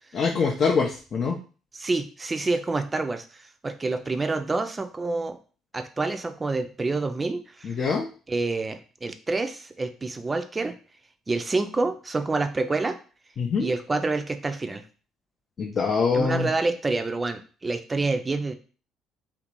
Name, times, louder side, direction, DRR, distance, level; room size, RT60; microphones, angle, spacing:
voice 1, 0.1-1.4 7.6-8.1 13.4-13.7 15.6-16.5, left 5 dB, 45° left, 1 dB, 0.4 m, -24 dB
voice 2, 1.8-5.4 5.7-7.7 8.3-10.7 11.3-13.0 13.6-14.8 16.1-18.5, right 3 dB, 25° right, 8 dB, 0.4 m, -27 dB
3.1 x 2.5 x 3.0 m, 0.38 s
figure-of-eight pair, 50°, 0 cm